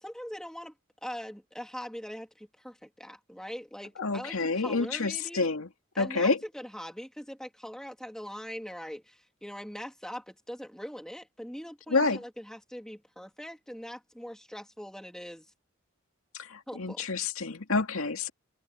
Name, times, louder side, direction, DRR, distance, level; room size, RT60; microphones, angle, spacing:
voice 1, 0.0-0.7 1.0-5.5 5.9-15.5 16.7-17.1, equal, 5° left, 2.6 m, -42 dB
voice 2, 4.0-5.7 6.0-6.4 11.9-12.2 16.4-18.3, left 3 dB, 80° left, 2.2 m, -28 dB
head